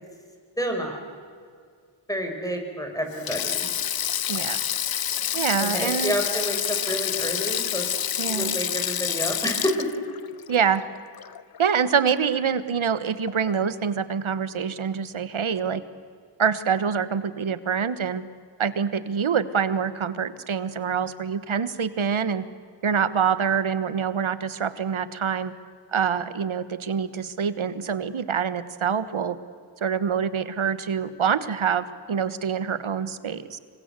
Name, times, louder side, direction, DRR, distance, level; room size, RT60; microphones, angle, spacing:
voice 1, 0.6-1.0 2.1-3.7 5.6-7.8 8.2-9.9, equal, 5° left, 3 dB, 6.1 m, -29 dB
Sink (filling or washing), 3.1-11.6 11.9-12.1 13.3-13.5, left 9 dB, 50° left, 0.6 m, -28 dB
voice 2, 4.3-4.6 5.3-6.1 8.2-8.6 10.5-10.8 11.6-15.8 16.4-18.2 18.6-22.4 22.8-25.5 25.9-29.4 29.8-33.6, right 7 dB, 75° right, 14 dB, 1.4 m, -25 dB
26.5 x 23.0 x 8.3 m, 2.1 s
cardioid pair, 55°, 48 cm